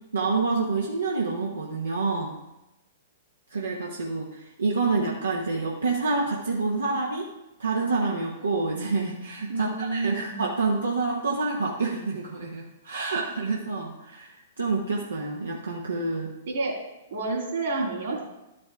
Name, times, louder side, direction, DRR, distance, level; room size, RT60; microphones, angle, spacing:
voice 1, 0.1-2.3 3.5-7.3 7.6-16.3, right 3 dB, 90° right, -2 dB, 1.0 m, -28 dB
voice 2, 9.5-10.4 16.5-16.8 17.1-18.2, right 3 dB, 65° right, -2 dB, 3.0 m, -29 dB
12.0 x 5.2 x 3.5 m, 0.97 s
hypercardioid pair, 115°, 0 cm